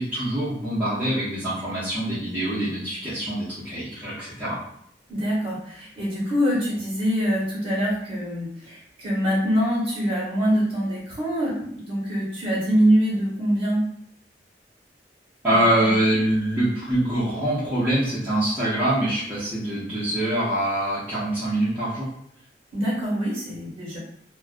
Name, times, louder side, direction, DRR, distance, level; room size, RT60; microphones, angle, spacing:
voice 1, 0.0-4.6 15.4-22.1, right 1 dB, 10° right, -12 dB, 0.6 m, -24 dB
voice 2, 5.1-13.8 15.8-15.9 22.7-24.0, equal, 35° right, -6 dB, 1.1 m, -24 dB
2.4 x 2.1 x 2.4 m, 0.70 s
head